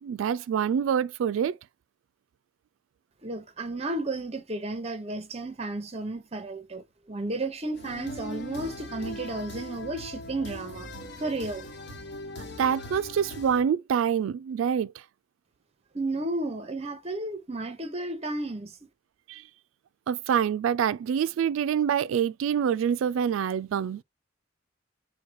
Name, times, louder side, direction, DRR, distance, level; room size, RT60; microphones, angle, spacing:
voice 1, 0.0-1.6 12.6-14.9 19.3-19.4 20.1-24.0, right 8 dB, 85° right, 0.3 m, -26 dB
voice 2, 3.2-10.9 11.2-11.7 15.9-18.8, right 2 dB, 30° right, 0.8 m, -33 dB
sound 1, 7.7-13.6, left 1 dB, 60° left, 1.0 m, -40 dB
4.7 x 2.2 x 4.5 m
head